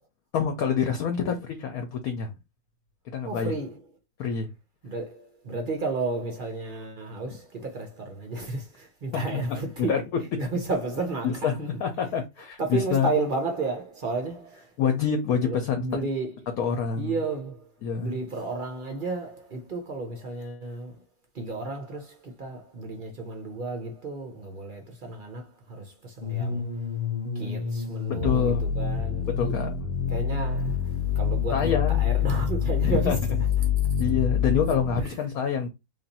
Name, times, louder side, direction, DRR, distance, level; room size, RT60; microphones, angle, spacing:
voice 1, 0.3-2.3 3.1-3.5 4.2-4.5 9.1-10.0 11.2-13.1 14.8-15.8 16.6-17.1 17.8-18.2 28.2-28.7 29.3-29.7 31.5-32.1 32.8-33.2 34.0-35.7, left 7 dB, 65° left, 0.9 m, -26 dB
voice 2, 3.2-3.8 4.8-10.0 10.4-11.7 12.0-12.1 12.6-14.7 15.3-16.5 17.0-17.7 18.0-21.0 21.3-26.8 27.3-29.6 30.1-33.2 33.8-33.9 35.0-35.2, right 3 dB, 55° right, 0.6 m, -32 dB
sound 1, 26.2-35.0, left 7 dB, 90° left, 0.4 m, -27 dB
3.4 x 2.5 x 4.0 m
omnidirectional pair, 1.9 m